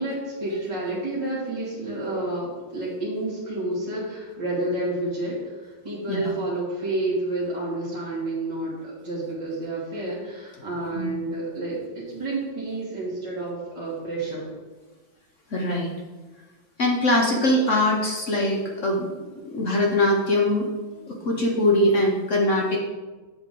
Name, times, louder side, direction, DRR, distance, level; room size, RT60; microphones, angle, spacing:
voice 1, 0.0-14.4, right 2 dB, 15° right, -9 dB, 1.9 m, -30 dB
voice 2, 15.5-15.9 16.8-19.1 19.4-20.7 21.1-22.8, left 1 dB, 50° left, -1 dB, 0.9 m, -22 dB
7.6 x 7.1 x 3.8 m, 1.2 s
omnidirectional pair, 2.3 m